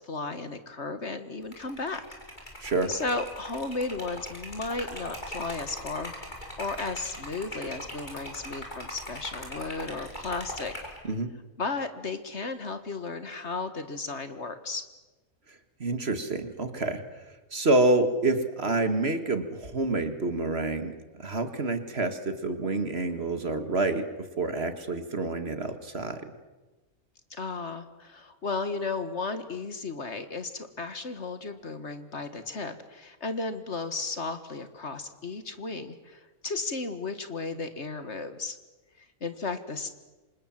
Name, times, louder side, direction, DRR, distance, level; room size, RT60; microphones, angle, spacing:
voice 1, 0.0-2.0 2.9-6.1 6.6-10.7 11.6-14.8 27.3-38.6 39.0-39.9, left 3 dB, 50° left, 10 dB, 1.9 m, -34 dB
Liquid, 1.4-11.0, left 1 dB, 30° left, 6.3 m, -41 dB
voice 2, 2.6-2.9 11.0-11.3 15.5-17.0 17.5-24.1 24.4-26.3, right 2 dB, 45° right, 9 dB, 2.0 m, -28 dB
28.0 x 26.0 x 7.6 m, 1.2 s
omnidirectional pair, 1.5 m